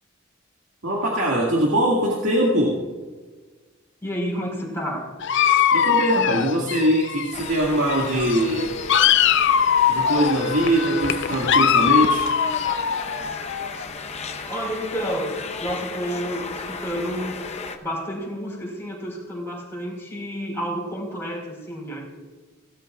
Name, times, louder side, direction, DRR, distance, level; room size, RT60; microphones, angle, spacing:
voice 1, 0.8-2.8 5.7-8.7 9.9-12.3, right 1 dB, 75° right, -3 dB, 2.0 m, -22 dB
voice 2, 4.0-5.1 13.7-17.5 17.8-22.0, equal, 15° left, -3 dB, 4.1 m, -30 dB
Dog, 5.2-7.6 7.9-13.8, left 8 dB, 60° left, 0.5 m, -21 dB
sound 1, 7.3-17.8, left 4 dB, 35° left, 0.9 m, -35 dB
18.0 x 12.5 x 2.4 m, 1.4 s
head